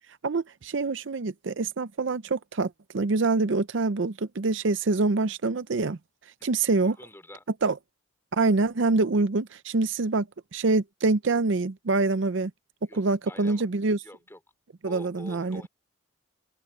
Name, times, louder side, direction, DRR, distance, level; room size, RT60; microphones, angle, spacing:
voice 1, 0.2-6.0 6.4-7.0 7.6-7.8 8.3-10.3 10.5-12.5 12.9-14.0 14.8-15.7, right 3 dB, 60° right, 0.6 m, -25 dB
voice 2, 6.4-7.4 12.9-13.7 14.0-14.4 14.9-15.7, left 1 dB, 10° left, 3.6 m, -47 dB
open air
head